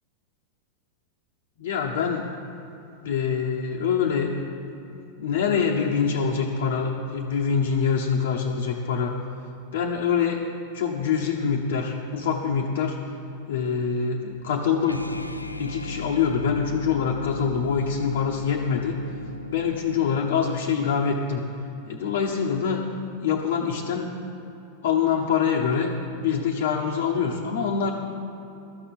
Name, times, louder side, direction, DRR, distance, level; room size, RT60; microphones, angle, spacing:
voice 1, 1.6-2.3 3.0-4.3 4.9-9.1 9.7-10.4 10.7-13.0 13.5-15.1 15.6-19.0 19.5-21.4 21.9-22.8 23.2-24.1 24.8-25.9 26.2-27.9, left 6 dB, 55° left, -1 dB, 0.9 m, -25 dB
sound 1, 14.8-20.9, left 2 dB, 85° left, 0.4 m, -37 dB
12.5 x 6.9 x 7.6 m, 2.9 s
figure-of-eight pair, 90°, 0 cm